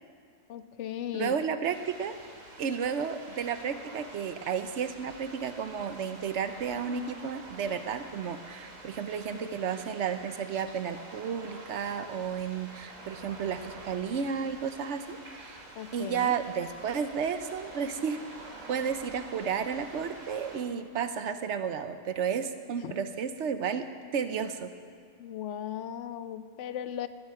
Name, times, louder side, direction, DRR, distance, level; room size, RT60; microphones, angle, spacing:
voice 1, 0.5-1.4 9.3-9.5 12.1-12.2 15.8-16.3 22.8-22.9 25.2-27.1, left 10 dB, 70° left, 12 dB, 0.9 m, -37 dB
voice 2, 1.1-2.2 2.6-15.6 15.9-18.2 18.7-24.7, right 7 dB, 65° right, 10 dB, 1.0 m, -32 dB
sound 1, 1.6-20.6, right 2 dB, 85° right, 2.5 m, -48 dB
18.0 x 12.0 x 4.8 m, 2.1 s
omnidirectional pair, 1.3 m